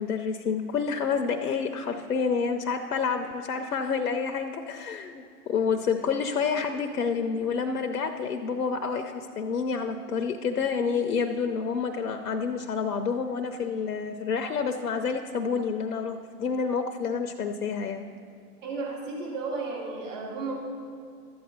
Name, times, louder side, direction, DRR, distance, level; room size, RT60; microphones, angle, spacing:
voice 1, 0.0-18.0, left 5 dB, 70° left, 5 dB, 0.8 m, -28 dB
voice 2, 18.6-20.6, right 3 dB, 50° right, -4 dB, 2.6 m, -33 dB
12.5 x 8.6 x 4.3 m, 2.5 s
figure-of-eight pair, 125°, 47 cm